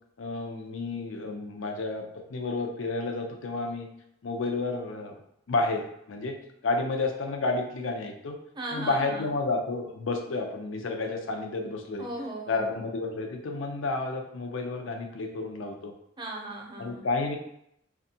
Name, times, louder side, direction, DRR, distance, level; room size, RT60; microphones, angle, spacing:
voice 1, 0.2-2.0 2.3-3.9 4.2-5.2 5.5-6.4 6.6-8.4 8.7-12.1 12.5-15.9 16.8-17.4, left 3 dB, 85° left, 3 dB, 0.5 m, -31 dB
voice 2, 8.6-9.3 12.0-12.8 16.2-17.0, right 2 dB, 25° right, -1 dB, 0.5 m, -37 dB
2.6 x 2.3 x 2.7 m, 0.75 s
head